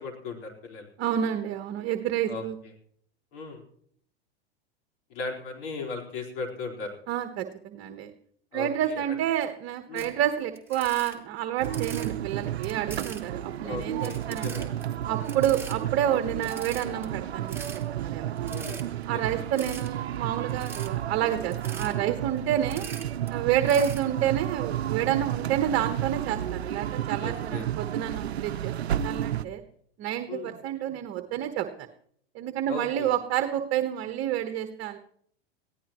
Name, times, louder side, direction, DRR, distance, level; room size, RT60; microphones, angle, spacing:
voice 1, 0.0-0.9 2.3-2.4 3.3-3.6 5.1-6.9 8.5-9.2 9.9-10.1 13.6-14.7 18.5-19.5 27.2-27.7 30.3-30.5 32.7-33.1, left 4 dB, 60° left, 1 dB, 4.5 m, -37 dB
voice 2, 1.0-2.5 7.1-8.1 8.5-14.7 15.1-18.6 19.1-22.9 23.3-29.6 30.0-31.9 32.3-35.0, right 10 dB, 45° right, 7 dB, 1.3 m, -29 dB
sound 1, 10.0-10.1 10.5-12.1 12.6-13.3 13.8-14.8 15.2-15.7 16.1-16.2 16.4-17.0 17.4-17.8 18.4-19.0 19.6-19.9 20.5-20.9 21.5-21.9 22.5-23.3 23.6-24.0, right 5 dB, 5° right, 2.5 m, -42 dB
sound 2, 11.6-29.5, right 11 dB, 90° right, 0.7 m, -32 dB
21.5 x 15.0 x 3.1 m, 0.64 s
hypercardioid pair, 110°, 31 cm